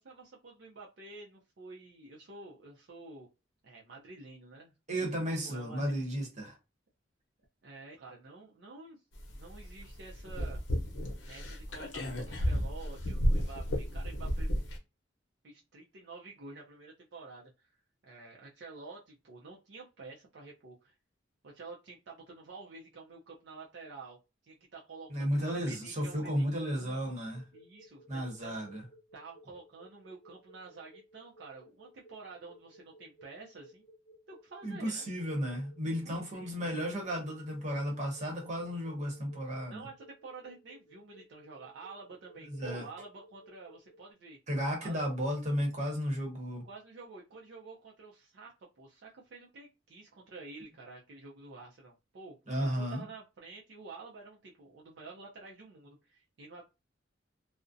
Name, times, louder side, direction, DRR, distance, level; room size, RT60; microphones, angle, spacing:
voice 1, 0.0-3.3 3.6-4.7 5.0-5.9 7.6-9.0 9.3-10.6 11.3-14.5 15.4-17.7 18.0-21.0 21.4-27.1 27.5-28.6 29.1-33.8 34.3-35.1 35.8-36.6 39.7-44.4 44.8-45.0 46.6-56.6, right 3 dB, 65° right, 0.4 m, -49 dB
voice 2, 4.9-6.5 25.1-27.4 28.1-28.8 34.6-39.9 42.4-42.9 44.5-46.6 52.5-53.1, equal, 40° right, 0.8 m, -34 dB
sound 1, 9.1-14.8, equal, 80° left, 0.7 m, -33 dB
sound 2, 27.3-44.1, right 1 dB, 30° left, 0.5 m, -58 dB
2.4 x 2.0 x 2.5 m
head